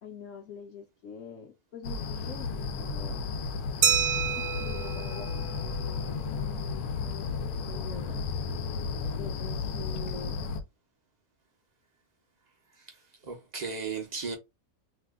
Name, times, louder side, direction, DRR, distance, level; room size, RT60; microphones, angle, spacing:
voice 1, 0.0-3.2 4.4-8.3 9.2-10.4, left 6 dB, 65° left, 1.0 m, -45 dB
sound 1, 1.8-10.6, left 5 dB, 85° left, 1.1 m, -33 dB
Glass, 3.8-6.3, right 8 dB, 75° right, 1.0 m, -29 dB
voice 2, 12.7-14.4, right 5 dB, 55° right, 0.4 m, -36 dB
2.8 x 2.2 x 3.5 m
omnidirectional pair, 1.5 m